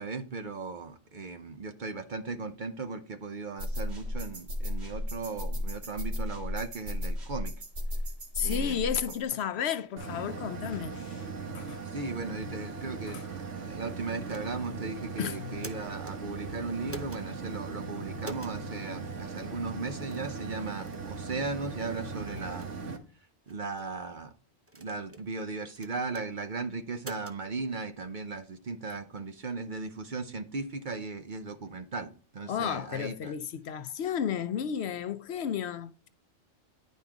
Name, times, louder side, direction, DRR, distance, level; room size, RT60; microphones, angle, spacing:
voice 1, 0.0-7.5 8.4-9.0 11.8-13.2 13.7-22.7 23.5-24.3 24.8-33.3, right 3 dB, 45° right, 0.8 m, -37 dB
sound 1, 3.6-9.3, left 1 dB, 65° right, 2.0 m, -34 dB
voice 2, 8.3-11.3 11.5-11.8 13.1-13.2 15.2-15.4 32.5-36.1, left 8 dB, 65° left, 0.8 m, -33 dB
sound 2, 10.0-23.0, right 4 dB, 85° right, 1.4 m, -39 dB
sound 3, 14.3-14.7 15.4-16.2 16.9-17.2 18.2-18.6 19.4-19.5 20.1-20.3 20.9-21.1 21.7-21.8 22.4-22.7 23.5-23.9 24.7-25.3 25.8-26.3 27.0-27.4, right 1 dB, 15° right, 0.5 m, -45 dB
10.5 x 5.5 x 3.5 m
omnidirectional pair, 1.2 m